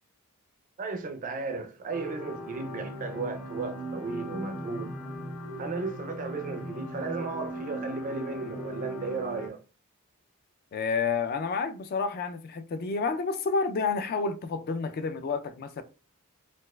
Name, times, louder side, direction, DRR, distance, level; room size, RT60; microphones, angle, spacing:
voice 1, 0.8-5.0 5.6-9.6, right 3 dB, 35° right, 0.4 m, -35 dB
sound 1, 1.9-9.5, right 1 dB, 70° left, 0.7 m, -38 dB
voice 2, 10.7-15.8, left 4 dB, 45° left, 0.3 m, -29 dB
4.1 x 2.3 x 2.2 m
head